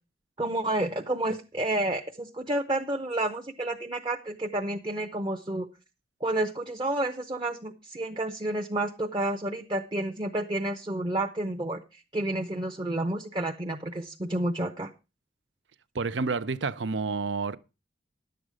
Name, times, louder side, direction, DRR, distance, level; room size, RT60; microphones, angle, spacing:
voice 1, 0.4-5.7 6.2-14.9, right 1 dB, 25° right, 0.8 m, -30 dB
voice 2, 15.9-17.6, right 4 dB, 80° right, 0.7 m, -29 dB
11.0 x 7.9 x 5.0 m
head